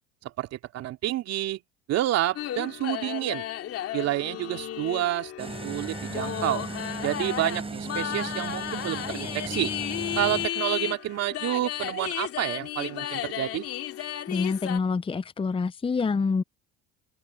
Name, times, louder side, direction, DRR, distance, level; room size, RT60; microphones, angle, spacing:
voice 1, 0.2-1.6 1.9-3.4 3.9-6.6 7.0-9.7 10.1-13.7, right 14 dB, 55° right, 3.0 m, -29 dB
sound 1, 2.4-14.8, left 12 dB, 50° left, 2.6 m, -34 dB
sound 2, 5.4-10.5, right 3 dB, 20° right, 6.9 m, -36 dB
voice 2, 14.3-16.4, left 4 dB, 15° left, 0.8 m, -26 dB
open air
hypercardioid pair, 75°, 30 cm